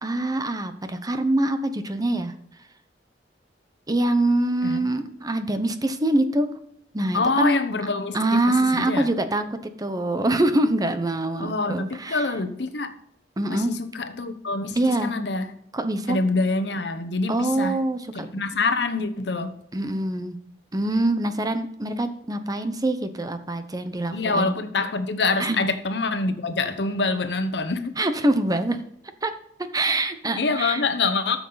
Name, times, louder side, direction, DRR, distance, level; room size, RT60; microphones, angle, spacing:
voice 1, 0.0-2.3 3.9-6.5 6.9-7.6 8.1-12.3 13.4-13.7 14.7-15.1 15.7-16.2 17.3-18.3 19.7-20.4 20.7-24.6 25.4-25.6 28.0-28.8 29.2-29.3 29.6-30.8, right 1 dB, 20° right, 0.8 m, -24 dB
voice 2, 7.1-9.1 11.4-12.9 13.5-15.5 16.1-17.8 18.3-19.6 24.1-27.9 30.4-31.4, left 3 dB, 70° left, 1.0 m, -25 dB
13.5 x 7.2 x 4.0 m
head